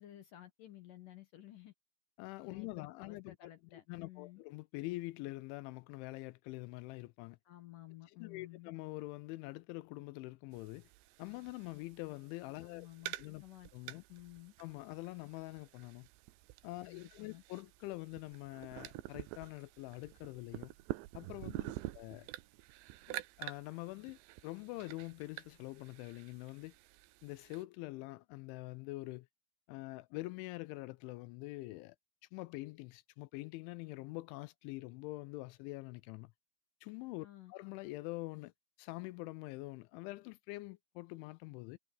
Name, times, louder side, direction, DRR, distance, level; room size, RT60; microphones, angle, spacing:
voice 1, 0.0-1.7 2.4-4.4 7.5-8.7 12.6-14.5 16.8-17.4 21.5-21.7 37.2-37.5, left 15 dB, 70° left, 2.1 m, -54 dB
voice 2, 2.2-3.5 3.9-7.4 8.2-10.9 11.2-12.9 13.2-13.4 13.7-14.0 14.6-16.1 16.6-20.7 21.1-21.5 22.0-22.3 23.1-26.7 27.2-29.3 29.7-32.0 32.3-36.3 36.8-38.5 38.8-41.8, left 21 dB, 85° left, 2.9 m, -45 dB
sound 1, 10.5-27.6, right 17 dB, 85° right, 2.7 m, -48 dB
omnidirectional pair, 5.5 m